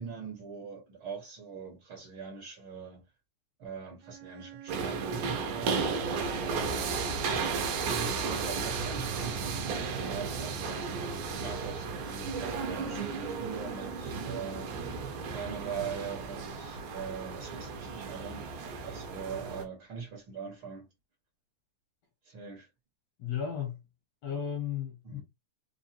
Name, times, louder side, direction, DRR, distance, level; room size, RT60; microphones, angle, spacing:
voice 1, 0.0-3.0 3.6-6.9 7.3-7.6 7.9-10.8 11.3-14.7 15.3-20.9 22.2-22.7 25.0-25.2, right 6 dB, 50° right, 1.6 m, -42 dB
Bowed string instrument, 4.0-7.8, right 10 dB, 90° right, 1.6 m, -48 dB
sound 1, 4.7-19.7, right 5 dB, 70° right, 2.3 m, -34 dB
voice 2, 23.2-23.8 24.2-25.2, left 8 dB, 70° left, 1.6 m, -34 dB
5.4 x 2.6 x 2.9 m
omnidirectional pair, 4.1 m